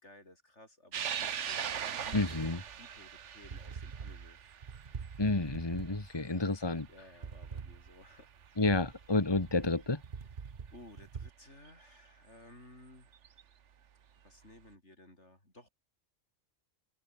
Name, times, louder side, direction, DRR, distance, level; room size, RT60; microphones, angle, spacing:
voice 1, 0.0-4.4 6.9-8.6 10.7-13.1 14.2-15.7, left 1 dB, 60° left, 7.1 m, -57 dB
sound 1, 0.9-7.6 8.1-8.2 9.4-9.5 11.7-11.8 13.1-13.4, right 8 dB, 65° right, 1.3 m, -40 dB
sound 2, 1.7-11.3, right 6 dB, 40° right, 1.1 m, -46 dB
voice 2, 2.1-2.6 5.2-6.9 8.6-10.0, left 2 dB, 20° left, 1.8 m, -30 dB
open air
omnidirectional pair, 1.3 m